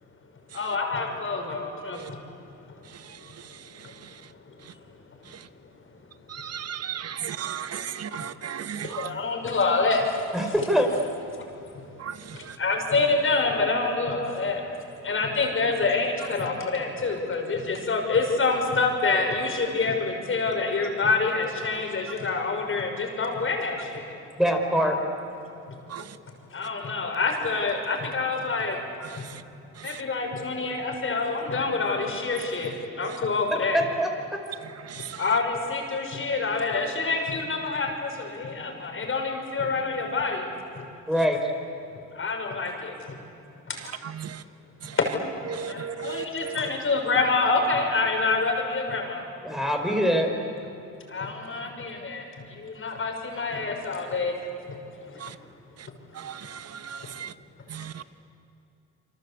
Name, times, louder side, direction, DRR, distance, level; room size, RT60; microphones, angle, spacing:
voice 1, 0.5-2.2 8.8-10.1 12.6-14.6 15.0-24.1 26.5-28.8 29.2-29.3 29.8-33.8 35.0-40.5 40.8-40.9 42.1-43.2 44.9-45.1 45.5-49.2 51.1-52.2 52.6-54.3, left 3 dB, 45° left, 3 dB, 6.0 m, -27 dB
voice 2, 6.3-9.2 12.0-12.5 25.9-26.0 29.9-30.0 32.4-32.5 33.0-33.2 34.9-35.2 44.0-44.4 44.8-44.9 45.5-46.6 55.2-55.3 56.2-57.3 57.7-58.0, right 8 dB, 55° right, 13 dB, 1.2 m, -35 dB
voice 3, 10.3-10.9 24.4-25.0 33.7-34.4 41.1-41.4 49.4-50.3, equal, ahead, 3 dB, 4.8 m, -23 dB
27.5 x 24.5 x 8.5 m, 2.7 s
cardioid pair, 90°, 30 cm